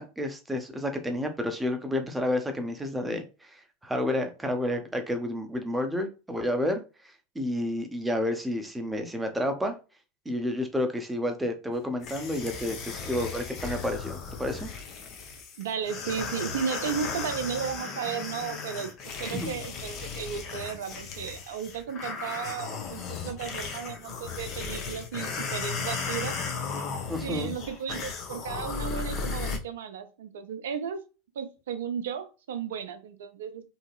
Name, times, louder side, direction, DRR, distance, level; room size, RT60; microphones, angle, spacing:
voice 1, 0.0-6.8 7.3-9.7 10.3-14.7 19.3-19.6 27.1-27.5, left 1 dB, 10° right, 5 dB, 0.7 m, -30 dB
sound 1, 12.0-29.6, left 5 dB, 45° left, 0.7 m, -36 dB
voice 2, 15.6-18.9 19.2-26.4 27.2-31.0 31.4-33.7, right 7 dB, 70° right, 9 dB, 0.5 m, -34 dB
2.8 x 2.7 x 2.3 m, 0.31 s
figure-of-eight pair, 80°, 0 cm